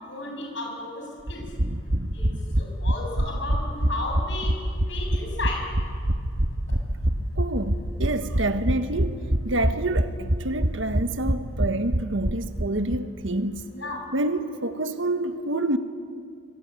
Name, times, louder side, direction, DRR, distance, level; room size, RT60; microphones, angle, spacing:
voice 1, 0.1-1.4 2.1-2.3 2.6-4.5 4.9-5.6 13.7-14.0, left 2 dB, 75° left, 7.9 m, -33 dB
sound 1, 1.3-13.0 13.3-13.4 13.6-13.7, right 1 dB, 55° right, 1.4 m, -25 dB
voice 2, 7.4-13.7 14.1-15.8, right 2 dB, 90° right, 1.6 m, -28 dB
25.0 x 24.5 x 9.2 m
head